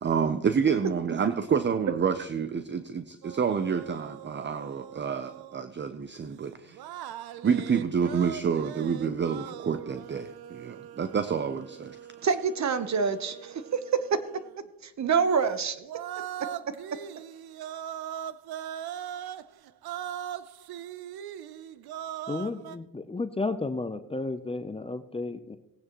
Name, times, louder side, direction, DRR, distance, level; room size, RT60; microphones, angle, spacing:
voice 1, 0.0-6.8 7.4-12.0, right 6 dB, 30° right, 10 dB, 0.6 m, -28 dB
sound 1, 3.2-5.7 6.6-14.6 15.8-22.8, right 10 dB, 65° right, 0.7 m, -41 dB
voice 2, 12.2-14.4 14.8-15.8, right 6 dB, 45° right, 12 dB, 1.0 m, -26 dB
voice 3, 22.3-25.6, left 3 dB, 15° left, 10 dB, 0.6 m, -32 dB
18.0 x 9.5 x 3.0 m, 0.87 s
cardioid pair, 80°, 40 cm